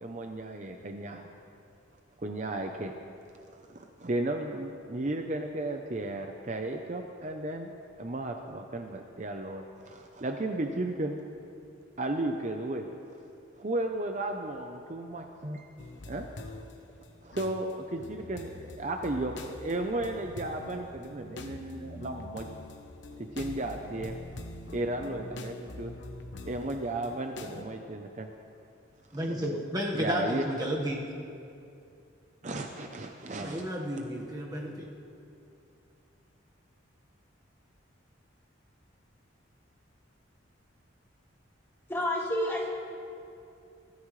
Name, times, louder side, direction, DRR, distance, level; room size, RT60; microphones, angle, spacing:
voice 1, 0.0-1.3 2.2-3.0 3.5-7.7 8.0-11.2 12.0-12.9 13.6-15.7 16.1-16.3 17.2-22.5 23.2-24.1 24.7-26.0 26.4-28.3 29.9-30.4 32.4-33.6, right 2 dB, 35° right, 4 dB, 0.7 m, -34 dB
sound 1, 15.8-16.7 17.0-27.6, left 2 dB, 60° left, 0.9 m, -44 dB
voice 2, 29.1-31.0 33.4-34.9, equal, 20° right, -2 dB, 1.4 m, -32 dB
voice 3, 41.9-42.7, left 1 dB, 10° left, -3 dB, 2.2 m, -29 dB
23.0 x 13.5 x 3.2 m, 2.5 s
head